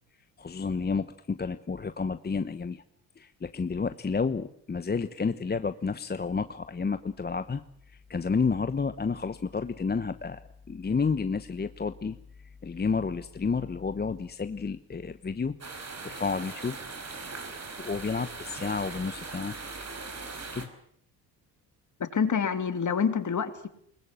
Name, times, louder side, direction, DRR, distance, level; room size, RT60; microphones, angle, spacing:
voice 1, 0.4-2.8 3.2-7.6 7.9-15.6 16.0-16.8 17.8-19.5 20.5-20.7, left 5 dB, 20° left, 11 dB, 1.0 m, -31 dB
sound 1, 15.6-20.7, right 3 dB, 35° right, 5.3 m, -40 dB
voice 2, 22.0-23.7, left 6 dB, 45° left, 9 dB, 3.0 m, -27 dB
22.0 x 20.5 x 9.0 m, 0.65 s
supercardioid pair, 75°, 43 cm